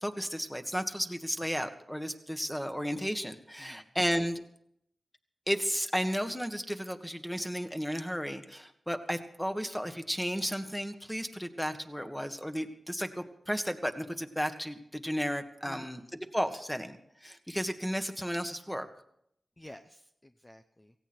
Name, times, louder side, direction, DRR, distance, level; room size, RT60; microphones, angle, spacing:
voice 1, 0.0-4.4 5.5-18.9, equal, 5° left, 7 dB, 1.6 m, -33 dB
voice 2, 3.6-3.9 15.7-16.1 19.6-20.9, left 1 dB, 20° left, 6 dB, 0.8 m, -51 dB
17.0 x 16.5 x 4.5 m, 0.74 s
cardioid pair, 60°, 0 cm